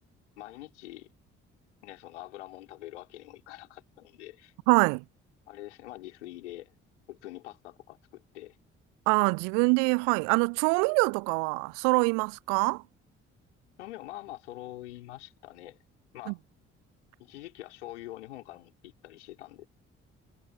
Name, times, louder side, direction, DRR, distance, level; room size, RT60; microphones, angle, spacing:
voice 1, 0.4-1.1 1.8-4.5 5.5-6.8 7.1-8.6 13.8-15.8 16.1-16.4 17.2-19.7, left 16 dB, 75° left, 4.7 m, -45 dB
voice 2, 4.7-5.0 9.1-12.8 16.3-16.4, right 40 dB or more, 60° right, 0.5 m, -24 dB
figure-of-eight pair, 40°, 35 cm